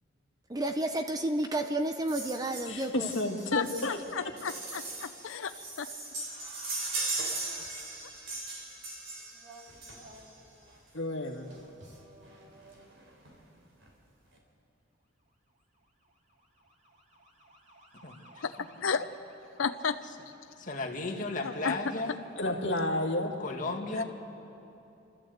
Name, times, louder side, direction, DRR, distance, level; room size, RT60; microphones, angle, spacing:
voice 1, 0.5-3.1, right 1 dB, 20° right, 0.6 m, -31 dB
sound 1, 2.1-10.4 11.5-11.6 11.9-12.0 12.2-12.4 12.7-13.3 13.8-13.9, right 2 dB, 75° right, 3.7 m, -39 dB
voice 2, 2.7-4.0 10.9-11.5 22.4-23.4, left 1 dB, 65° left, 1.9 m, -31 dB
voice 3, 3.5-5.9 18.4-19.0 19.6-20.0 21.4-22.0 24.0-24.1, left 6 dB, 85° left, 0.7 m, -33 dB
voice 4, 6.3-7.8 9.3-10.8 11.5-12.9 17.2-18.4 19.5-19.6, right 1 dB, 35° right, 2.7 m, -54 dB
voice 5, 18.0-18.7 20.6-22.2 23.4-24.0, left 3 dB, 40° left, 2.1 m, -35 dB
29.0 x 13.5 x 7.9 m
head